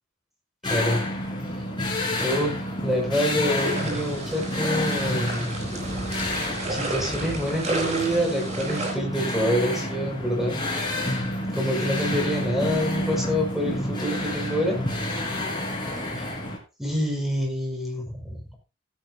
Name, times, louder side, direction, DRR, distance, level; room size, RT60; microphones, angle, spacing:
sound 1, 0.6-16.6, left 1 dB, 25° left, 4.2 m, -29 dB
voice 1, 0.7-1.0 2.2-5.5 6.7-10.6 11.5-14.8 16.8-18.6, equal, ahead, 0 dB, 5.4 m, -26 dB
sound 2, 3.5-8.9, right 2 dB, 35° right, 3.9 m, -32 dB
17.0 x 10.0 x 2.7 m, 0.29 s
head